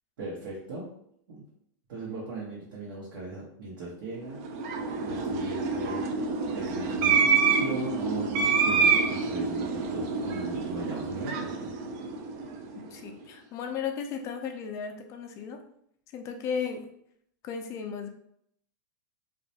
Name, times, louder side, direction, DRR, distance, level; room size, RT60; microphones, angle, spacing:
voice 1, 0.2-0.9 1.3-1.4 1.9-4.4 5.0-6.1 6.5-11.8, right 3 dB, 80° right, -7 dB, 0.9 m, -38 dB
sound 1, 4.3-12.8, right 5 dB, 45° right, 0.3 m, -27 dB
voice 2, 12.9-15.6 16.1-16.9 17.4-18.1, left 6 dB, 30° left, 5 dB, 0.3 m, -35 dB
2.3 x 2.1 x 2.7 m, 0.70 s
supercardioid pair, 140°, 11 cm